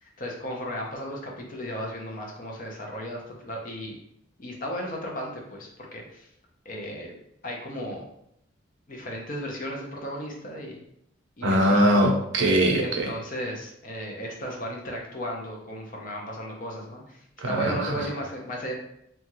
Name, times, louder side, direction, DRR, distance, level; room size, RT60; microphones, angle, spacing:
voice 1, 0.0-4.0 4.4-6.3 6.6-7.1 7.4-8.1 8.9-10.8 11.4-12.1 12.8-18.7, equal, 40° left, 0 dB, 0.6 m, -35 dB
voice 2, 11.4-13.1 17.4-18.1, right 1 dB, 65° right, 2 dB, 0.6 m, -22 dB
2.8 x 2.3 x 2.9 m, 0.75 s
head